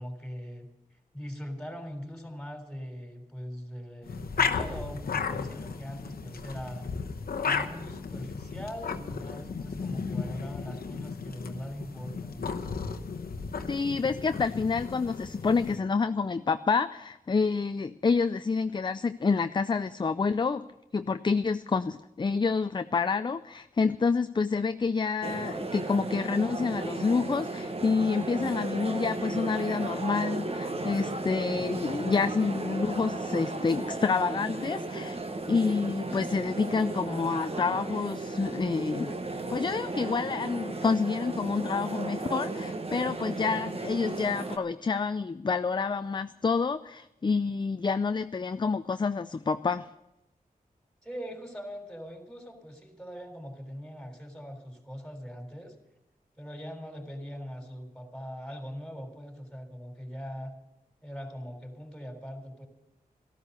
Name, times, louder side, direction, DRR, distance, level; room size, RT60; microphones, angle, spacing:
voice 1, 0.0-6.9 7.4-12.5 51.0-55.8 56.4-60.5 61.0-62.7, equal, 5° left, 4 dB, 3.7 m, -41 dB
sound 1, 4.0-15.8, left 5 dB, 75° left, 1.0 m, -34 dB
voice 2, 13.7-20.7 20.9-35.2 35.5-39.1 39.5-49.9, left 4 dB, 30° left, 12 dB, 0.4 m, -28 dB
sound 2, 25.2-44.6, right 2 dB, 40° right, 1.3 m, -35 dB
13.5 x 12.5 x 6.7 m, 0.91 s
cardioid pair, 50°, 15 cm